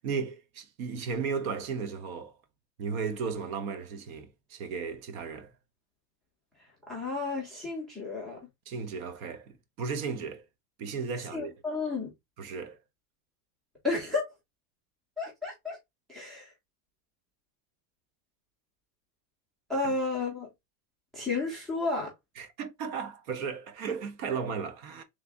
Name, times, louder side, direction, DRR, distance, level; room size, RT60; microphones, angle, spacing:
voice 1, 0.0-2.3 2.8-5.5 8.7-10.4 10.8-11.5 12.4-12.8 19.8-19.9 22.4-25.0, right 5 dB, 70° right, 0.9 m, -35 dB
voice 2, 6.9-8.4 11.3-12.1 13.8-14.3 15.2-15.8 16.1-16.5 19.7-20.5 21.1-22.1, left 3 dB, ahead, 0.3 m, -32 dB
3.3 x 2.7 x 3.3 m
cardioid pair, 175°, 42 cm